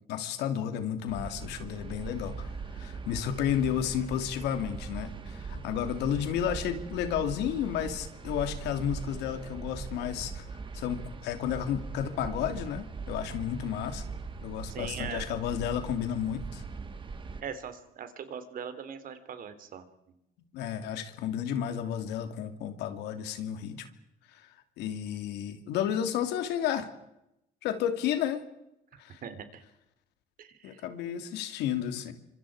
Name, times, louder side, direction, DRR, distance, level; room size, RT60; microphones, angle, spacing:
voice 1, 0.1-10.4 10.7-14.0 14.4-16.6 20.5-23.9 24.3-24.4 24.8-26.9 27.6-28.4 29.0-29.2 30.6-32.1, left 9 dB, 90° left, 8 dB, 2.8 m, -32 dB
sound 1, 1.1-17.4, right 4 dB, 30° right, 2.5 m, -40 dB
voice 2, 14.7-15.2 17.4-20.1 28.9-29.6 30.4-30.8, right 7 dB, 55° right, 10 dB, 3.2 m, -41 dB
28.5 x 25.5 x 4.9 m, 0.87 s
cardioid pair, 110°, 17 cm